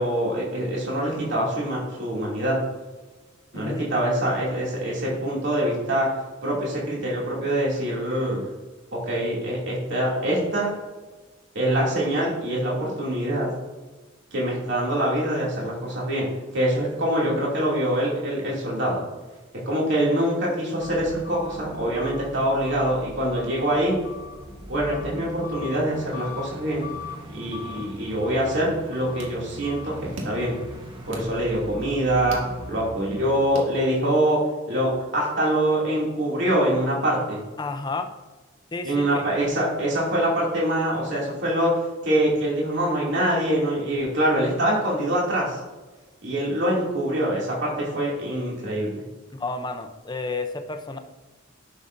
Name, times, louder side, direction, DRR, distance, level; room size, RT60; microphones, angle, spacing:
voice 1, 0.0-2.6 3.5-6.1 6.4-8.5 8.9-10.7 11.5-13.5 14.3-16.3 16.5-19.0 19.7-24.0 24.7-26.9 27.3-29.9 30.2-30.5 31.1-32.4 32.7-34.4 34.7-37.4 38.8-41.7 42.0-45.6 46.2-48.9, right 1 dB, 60° right, -5 dB, 2.6 m, -24 dB
voice 2, 3.5-3.9 27.5-27.9 37.6-38.1 38.7-39.3 49.3-51.0, left 3 dB, 20° left, 7 dB, 0.6 m, -32 dB
sound 1, 20.8-33.5, left 2 dB, 25° right, 1.1 m, -40 dB
sound 2, 28.7-34.3, right 1 dB, 80° right, 1.7 m, -43 dB
10.5 x 6.5 x 2.6 m, 1.2 s
head